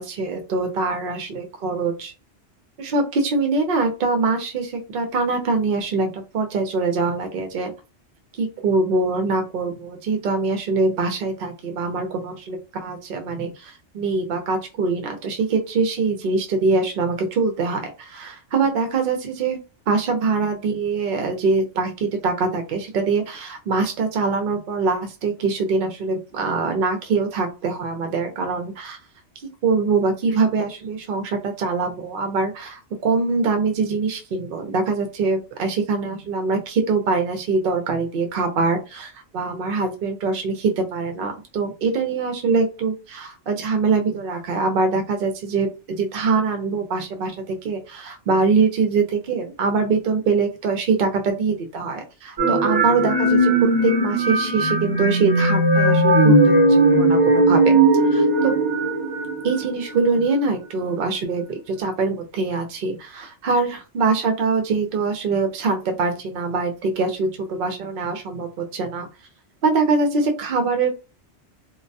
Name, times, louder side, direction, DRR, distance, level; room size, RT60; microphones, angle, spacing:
voice 1, 0.0-2.1 2.8-7.7 8.4-19.6 19.9-29.0 29.6-53.5 53.8-57.8 58.1-58.5 59.4-69.1 69.6-70.9, right 4 dB, 60° right, 5 dB, 0.7 m, -23 dB
sound 1, 52.4-60.1, right 2 dB, 25° right, 0.8 m, -18 dB
2.2 x 2.1 x 2.6 m, 0.30 s
omnidirectional pair, 1.2 m